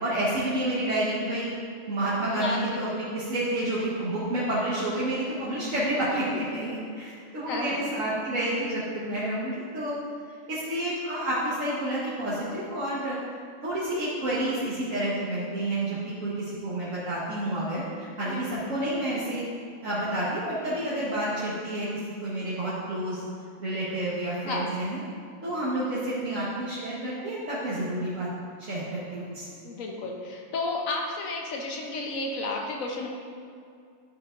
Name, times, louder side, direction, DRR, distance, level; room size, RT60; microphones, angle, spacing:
voice 1, 0.0-1.5 1.9-10.0 10.5-13.2 13.6-19.5 19.8-21.9 22.2-23.2 23.6-25.0 25.4-28.3 28.6-29.5, right 1 dB, 75° right, -10 dB, 1.8 m, -29 dB
voice 2, 2.3-3.0 7.5-7.9 18.2-18.8 24.4-24.7 29.6-33.1, left 2 dB, 85° left, 1 dB, 1.3 m, -32 dB
11.0 x 6.7 x 2.6 m, 2.3 s
omnidirectional pair, 1.4 m